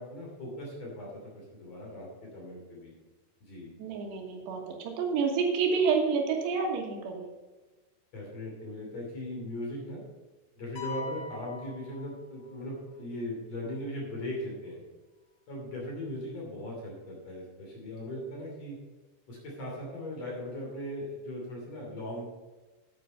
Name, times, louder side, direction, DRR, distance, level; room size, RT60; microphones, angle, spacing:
voice 1, 0.0-2.9 3.4-3.8 8.1-10.0 10.6-14.8 15.5-18.8 19.3-22.3, left 1 dB, 40° left, -2 dB, 3.6 m, -39 dB
voice 2, 3.8-7.3, right 5 dB, 75° right, 2 dB, 3.5 m, -29 dB
sound 1, 10.8-12.7, left 4 dB, 60° left, 2.1 m, -42 dB
9.3 x 9.2 x 5.6 m, 1.2 s
omnidirectional pair, 5.0 m